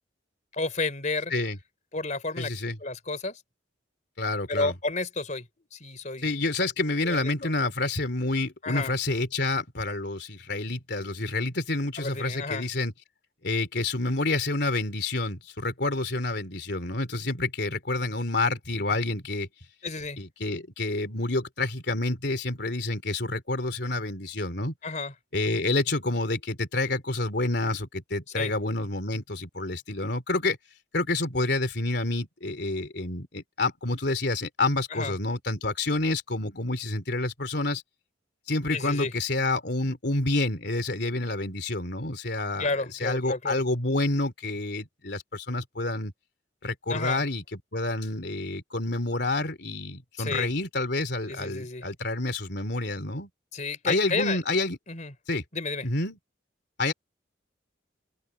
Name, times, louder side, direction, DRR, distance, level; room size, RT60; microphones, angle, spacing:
voice 1, 0.5-1.3 1.9-2.5 2.8-3.4 4.5-5.4 5.7-6.3 7.0-7.3 8.6-8.9 12.0-12.6 19.8-20.2 24.8-25.1 28.4-28.5 34.9-35.1 38.7-39.1 42.6-43.6 46.9-47.2 50.2-50.5 51.3-51.8 53.5-54.4 54.9-55.1 55.5-55.9, left 3 dB, 40° left, 3.8 m, -31 dB
voice 2, 2.4-2.8 4.2-4.7 6.2-12.9 13.4-19.5 20.2-24.7 25.3-30.6 30.9-37.8 38.5-46.1 46.6-53.3 53.9-54.8 55.3-55.4 55.8-56.2 56.8-56.9, left 2 dB, 60° left, 3.7 m, -28 dB
open air
head